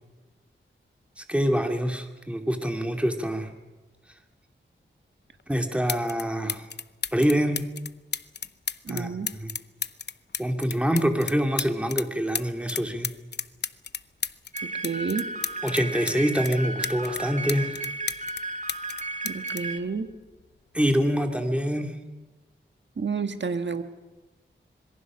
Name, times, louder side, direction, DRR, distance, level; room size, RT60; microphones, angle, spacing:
voice 1, 1.3-3.5 5.5-6.6 7.1-7.6 8.9-9.5 10.4-13.1 15.6-17.8 20.7-21.9, equal, 5° right, 4 dB, 2.6 m, -25 dB
sound 1, 5.4-5.5 5.9-6.2 6.5-12.1 12.3-16.2 16.4-18.4 18.7-20.5 21.5-21.7, left 6 dB, 55° left, 0.7 m, -33 dB
voice 2, 8.8-9.3 14.8-15.3 19.2-20.1 23.0-23.8, right 5 dB, 60° right, 8 dB, 1.8 m, -30 dB
sound 2, 14.5-19.8, right 2 dB, 35° right, 1.9 m, -34 dB
26.0 x 22.5 x 6.3 m, 1.2 s
wide cardioid pair, 80°, 21 cm